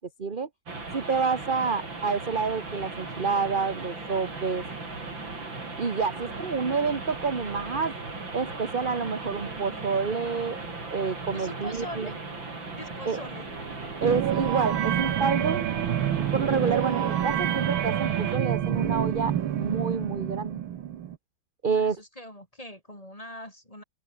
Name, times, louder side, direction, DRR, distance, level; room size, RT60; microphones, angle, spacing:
sound 1, 0.7-18.4, right 3 dB, 70° right, 6.0 m, -38 dB
voice 1, 0.9-4.6 5.8-7.9 8.3-10.6 10.9-12.1 13.0-13.2 14.0-15.7 16.3-20.6 21.6-22.0, right 5 dB, 30° right, 1.5 m, -28 dB
sound 2, 3.3-18.2, right 3 dB, 55° right, 4.3 m, -47 dB
voice 2, 6.1-6.4 11.3-12.2 12.8-13.5 21.7-23.8, left 1 dB, 15° left, 7.9 m, -42 dB
sound 3, 14.0-21.2, right 11 dB, 90° right, 2.0 m, -27 dB
omnidirectional pair, 2.2 m